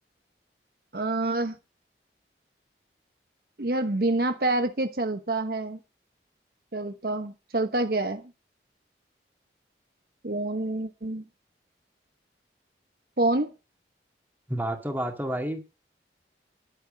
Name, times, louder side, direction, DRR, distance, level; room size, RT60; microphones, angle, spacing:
voice 1, 0.9-1.5 3.6-5.8 6.7-8.2 10.2-11.2 13.2-13.5, right 2 dB, 55° right, 8 dB, 1.1 m, -27 dB
voice 2, 14.5-15.7, right 1 dB, 10° right, 4 dB, 2.2 m, -30 dB
11.0 x 8.9 x 5.3 m, 0.29 s
head